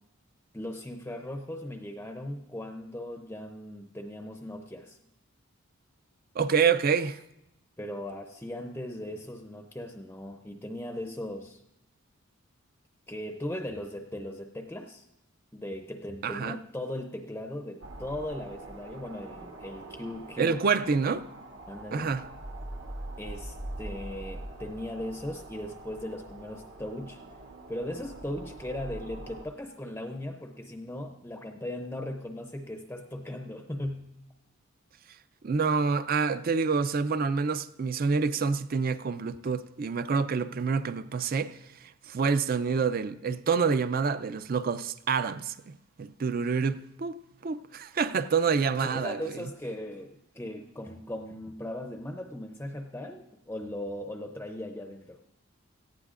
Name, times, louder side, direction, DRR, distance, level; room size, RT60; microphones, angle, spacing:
voice 1, 0.5-5.0 7.8-11.6 13.1-15.0 15.5-20.8 21.7-22.2 23.2-27.2 27.7-34.1 48.9-55.2, left 1 dB, 10° left, 0.5 m, -38 dB
voice 2, 6.4-7.2 16.2-16.6 20.4-21.2 21.9-22.2 35.4-41.6 42.1-45.7 46.0-47.2 47.4-49.2, right 5 dB, 45° right, 0.4 m, -27 dB
sound 1, 17.8-29.5, right 1 dB, 65° right, 1.2 m, -43 dB
18.0 x 14.5 x 2.5 m
head